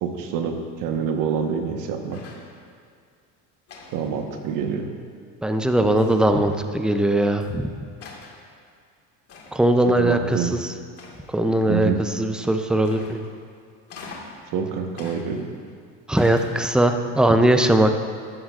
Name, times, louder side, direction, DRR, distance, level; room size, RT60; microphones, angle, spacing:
voice 1, 0.0-2.2 3.9-4.9 9.8-10.5 11.7-12.0 14.5-15.5, right 7 dB, 65° right, 4 dB, 1.2 m, -26 dB
sound 1, 2.1-2.6 3.7-4.8 6.0-6.5 7.4-7.5 8.0-8.4 9.3-9.7 11.0-11.5 12.8-13.4 13.9-14.4 15.0-15.7 16.2-16.9, left 4 dB, 40° left, 1.8 m, -44 dB
voice 2, 5.4-7.8 9.5-10.7 11.3-13.2 16.1-18.0, right 1 dB, ahead, 6 dB, 0.4 m, -20 dB
14.0 x 11.0 x 2.4 m, 2.1 s
cardioid pair, 125°, 35 cm